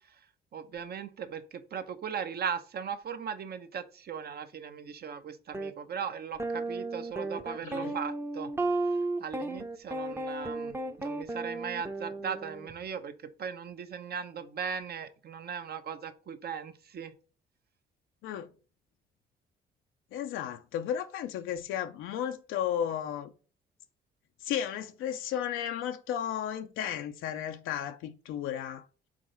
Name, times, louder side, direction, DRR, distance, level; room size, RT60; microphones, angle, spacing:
voice 1, 0.5-8.5 9.2-17.1, right 7 dB, 55° right, 0.9 m, -38 dB
sound 1, 5.5-5.7 6.4-12.7, right 2 dB, 10° right, 0.7 m, -34 dB
voice 2, 7.6-8.0 18.2-18.5 20.1-23.3 24.4-28.8, left 9 dB, 90° left, 0.5 m, -34 dB
4.9 x 3.9 x 5.6 m
cardioid pair, 90°, 20 cm